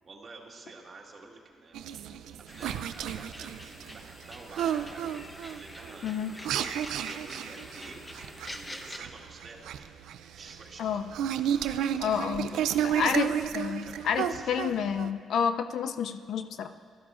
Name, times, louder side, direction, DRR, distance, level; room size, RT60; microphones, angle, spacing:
voice 1, 0.0-5.2 5.5-6.2 6.5-9.8 10.3-11.3 11.7-11.9 12.5-13.4 13.8-14.5, right 3 dB, 45° right, 0 dB, 1.7 m, -49 dB
sound 1, 1.7-15.1, right 10 dB, 85° right, 0.4 m, -32 dB
sound 2, 2.5-9.0, left 1 dB, 15° left, 0.8 m, -46 dB
voice 2, 12.0-12.5 12.9-16.7, left 7 dB, 70° left, 9 dB, 0.4 m, -29 dB
16.5 x 12.5 x 2.5 m, 2.1 s
cardioid pair, 90°, 0 cm